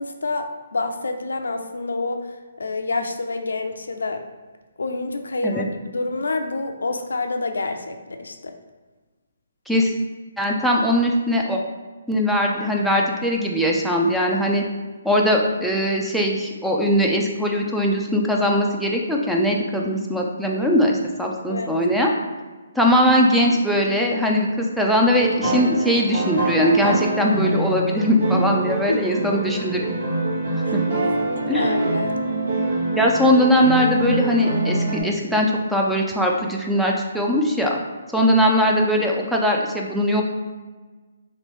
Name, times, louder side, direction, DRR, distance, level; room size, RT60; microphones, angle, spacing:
voice 1, 0.0-4.2 4.8-8.5 21.5-21.7 28.9-29.3 30.6-30.8 31.0-32.1, left 3 dB, 85° left, 6 dB, 0.4 m, -28 dB
voice 2, 10.4-11.6 12.1-14.6 15.0-22.1 22.8-29.8 30.5-30.8 31.5-31.7 33.0-37.8 38.1-40.2, equal, ahead, -1 dB, 0.4 m, -20 dB
sound 1, 25.1-35.0, right 2 dB, 75° right, 1.4 m, -25 dB
3.2 x 2.9 x 3.0 m, 1.3 s
hypercardioid pair, 150°, 0 cm